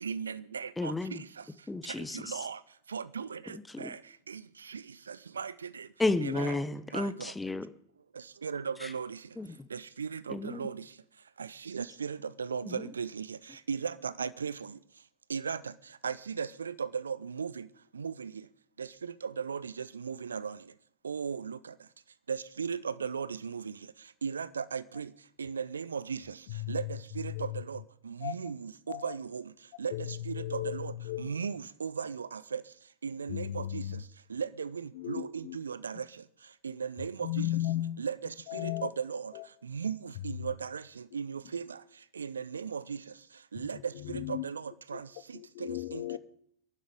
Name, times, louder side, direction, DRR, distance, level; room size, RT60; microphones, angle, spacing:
voice 1, 0.0-1.2 2.2-2.6 2.9-4.0 4.3-4.4 4.7-4.8 5.1-5.9 6.2-6.6 6.9-7.3 8.4-9.2 9.7-10.8 11.4-13.4 13.7-14.7 15.3-15.6 16.0-17.7 18.0-18.3 18.8-18.9 19.2-20.6 21.0-21.6 22.3-23.7 24.2-25.1 25.4-26.2 26.7-26.9 27.2-27.8 28.1-29.4 29.8-29.9 30.3-30.9 31.2-32.6 33.0-33.8 34.3-36.0 36.6-37.5 38.0-38.2 38.5-39.3 39.7-40.0 40.2-40.8 41.1-41.7 42.2-43.0 43.5-45.1 45.9-46.2, right 6 dB, 70° right, 0.5 m, -36 dB
voice 2, 0.8-1.2 1.7-2.3 3.7-3.9 6.0-7.7 8.8-8.9 9.4-9.7 10.3-10.7 12.7-12.8, left 2 dB, 10° left, 0.8 m, -32 dB
voice 3, 26.5-26.9 27.3-27.6 28.2-28.3 28.9-29.1 29.9-31.3 33.3-34.0 34.9-35.6 37.2-38.0 38.5-38.9 39.3-39.5 43.6-44.5 44.9-45.0 45.3-46.2, left 14 dB, 50° left, 0.7 m, -35 dB
24.0 x 11.0 x 3.6 m
figure-of-eight pair, 90°, 0 cm